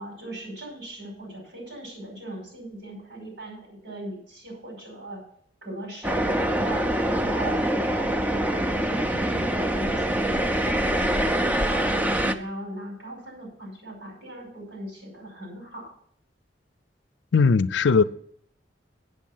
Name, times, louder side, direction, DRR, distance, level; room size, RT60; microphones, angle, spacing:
voice 1, 0.0-5.2 5.6-6.2 6.5-15.9, right 1 dB, 80° right, 5.5 m, -39 dB
sound 1, 6.0-12.3, right 1 dB, 10° right, 0.5 m, -24 dB
voice 2, 17.3-18.0, left 5 dB, 75° left, 0.4 m, -18 dB
8.0 x 7.5 x 7.1 m
head